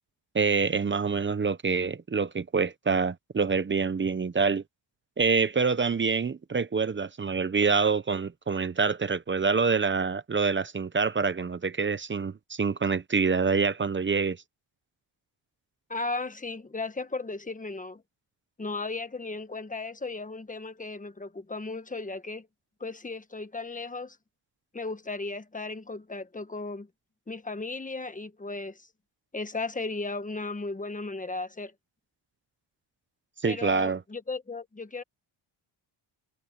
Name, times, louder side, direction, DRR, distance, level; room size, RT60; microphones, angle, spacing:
voice 1, 0.3-4.6 5.2-14.4 33.4-34.0, right 5 dB, 25° right, 0.8 m, -26 dB
voice 2, 15.9-18.0 18.6-22.5 22.8-24.2 24.7-26.9 27.3-28.9 29.3-31.7 33.4-35.0, left 3 dB, 15° left, 1.3 m, -35 dB
cardioid pair, 130°, 49 cm